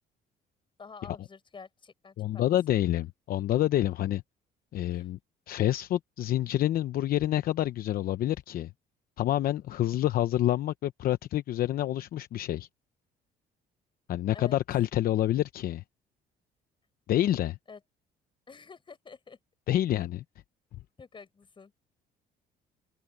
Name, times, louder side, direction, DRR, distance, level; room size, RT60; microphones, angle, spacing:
voice 1, 0.8-2.4 4.8-5.1 14.3-14.6 17.7-17.8 18.5-19.4 20.0-20.1 21.0-21.7, left 5 dB, 30° left, 5.9 m, -48 dB
voice 2, 2.2-4.2 4.7-5.2 5.5-8.7 9.2-12.7 14.1-15.8 17.1-17.6 19.7-20.2, left 13 dB, 60° left, 0.8 m, -27 dB
open air
cardioid pair, 110°, 17 cm